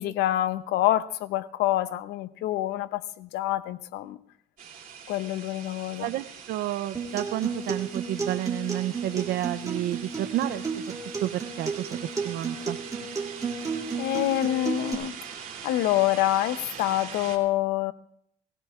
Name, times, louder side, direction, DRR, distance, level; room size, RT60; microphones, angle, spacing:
voice 1, 0.0-4.2 5.1-6.1 13.9-15.1 15.6-17.9, left 14 dB, 85° left, 0.7 m, -26 dB
sound 1, 4.6-17.4, right 7 dB, 50° right, 2.7 m, -42 dB
voice 2, 6.0-12.8, right 13 dB, 70° right, 0.5 m, -31 dB
Acoustic guitar, 6.9-14.9, right 5 dB, 20° right, 2.8 m, -33 dB
23.5 x 17.0 x 2.4 m
cardioid pair, 110°, 17 cm